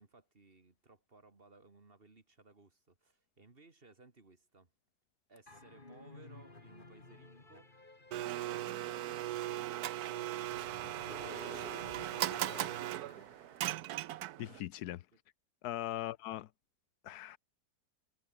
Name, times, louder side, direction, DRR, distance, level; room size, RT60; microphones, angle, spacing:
voice 1, 0.0-4.7 5.3-7.7 15.9-16.1, right 3 dB, 35° right, 2.5 m, -61 dB
sound 1, 5.5-14.2, left 2 dB, 30° left, 3.2 m, -53 dB
Domestic sounds home sounds, 8.1-14.6, right 14 dB, 80° right, 1.2 m, -38 dB
voice 2, 14.4-15.0 15.6-16.5 17.0-17.4, left 13 dB, 85° left, 1.2 m, -40 dB
omnidirectional pair, 1.6 m